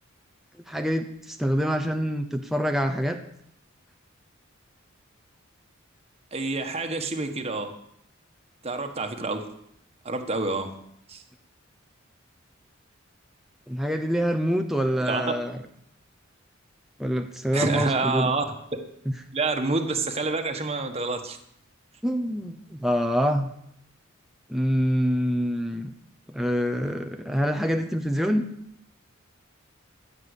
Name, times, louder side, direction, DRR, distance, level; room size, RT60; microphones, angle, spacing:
voice 1, 0.7-3.2 13.7-15.6 17.0-18.3 22.0-23.5 24.5-25.9 26.3-28.5, equal, ahead, 5 dB, 0.8 m, -26 dB
voice 2, 6.3-7.7 8.6-9.4 10.0-10.7 11.1-11.2 15.1-15.4 17.5-18.4 19.3-21.4, right 3 dB, 30° right, 5 dB, 1.4 m, -27 dB
15.0 x 7.5 x 8.1 m, 0.74 s
head